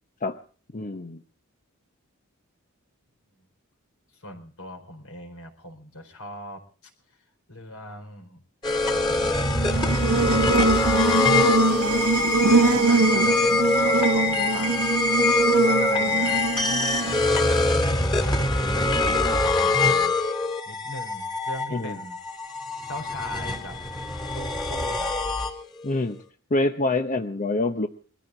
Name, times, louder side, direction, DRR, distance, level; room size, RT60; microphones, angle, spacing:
voice 1, 0.7-1.2 21.7-22.0 25.8-26.2 26.5-27.9, left 2 dB, 35° left, 7 dB, 0.8 m, -26 dB
voice 2, 4.1-7.2 7.5-8.4 9.5-10.3 10.5-12.0 12.5-14.8 15.5-17.1 17.7-20.2 20.6-22.2 22.9-23.8 24.3-25.1, left 1 dB, 70° left, 6 dB, 4.3 m, -40 dB
sound 1, 8.6-25.9, left 2 dB, 20° left, 2.6 m, -24 dB
Buzz, 9.5-17.6, right 3 dB, 90° right, 1.5 m, -23 dB
22.5 x 14.5 x 3.9 m, 0.41 s
head